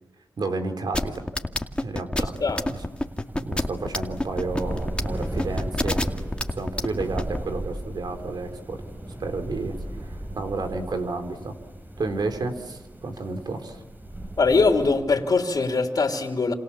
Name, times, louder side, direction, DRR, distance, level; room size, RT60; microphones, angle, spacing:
voice 1, 0.4-1.3 1.8-2.4 2.7-2.8 3.4-6.0 6.5-8.8 9.2-11.6 12.0-13.8, right 3 dB, 70° right, 6 dB, 3.6 m, -31 dB
sound 1, 0.9-7.4, left 1 dB, 15° left, 2.2 m, -26 dB
sound 2, 2.2-14.9, right 1 dB, 25° right, 5.3 m, -36 dB
voice 2, 14.4-16.5, left 4 dB, 60° left, 3 dB, 3.3 m, -22 dB
29.0 x 27.5 x 7.2 m, 1.0 s
cardioid pair, 40°, 7 cm